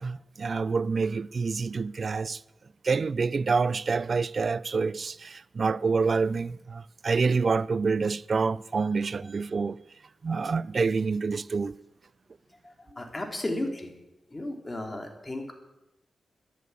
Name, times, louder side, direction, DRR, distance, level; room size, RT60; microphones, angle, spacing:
voice 1, 0.0-2.4 2.8-9.8 10.2-11.8, right 4 dB, 55° right, 0.5 m, -27 dB
voice 2, 12.6-13.9 14.3-15.5, left 1 dB, 25° left, 3.3 m, -34 dB
13.5 x 10.5 x 8.4 m
cardioid pair, 65°, 0 cm